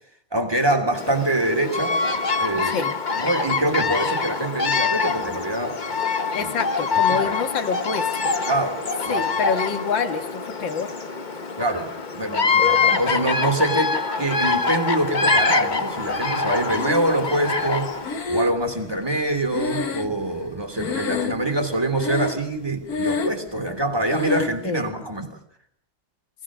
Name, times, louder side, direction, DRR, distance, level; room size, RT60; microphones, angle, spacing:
voice 1, 0.3-2.0 2.4-2.8 3.1-5.7 6.4-6.5 7.1-7.3 8.4-9.2 11.6-17.9 18.3-25.3, right 1 dB, 10° right, 5 dB, 3.2 m, -25 dB
Bird vocalization bird call bird song, 0.9-18.2, left 4 dB, 30° left, 1.1 m, -24 dB
voice 2, 2.6-2.9 6.3-8.3 9.1-10.9 24.6-24.9, left 6 dB, 65° left, 7 dB, 2.3 m, -27 dB
Breathing, 16.7-17.5 18.0-20.5 20.8-21.6 22.0-22.6 22.8-23.5 24.1-24.6, left 4 dB, 50° left, 1.9 m, -28 dB
28.0 x 19.5 x 6.3 m, 0.68 s
omnidirectional pair, 2.2 m